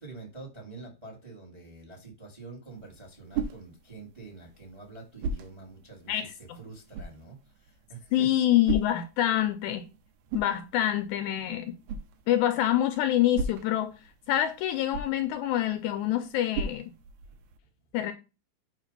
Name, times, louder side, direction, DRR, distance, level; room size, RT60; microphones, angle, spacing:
voice 1, 0.0-8.3, right 3 dB, 20° right, 0.8 m, -46 dB
sound 1, 2.7-17.6, right 4 dB, 75° right, 2.0 m, -40 dB
voice 2, 6.1-6.6 8.1-9.9 10.3-11.7 12.3-14.0 14.3-16.9 17.9-18.1, left 12 dB, 80° left, 1.8 m, -26 dB
7.4 x 2.8 x 5.2 m
omnidirectional pair, 3.7 m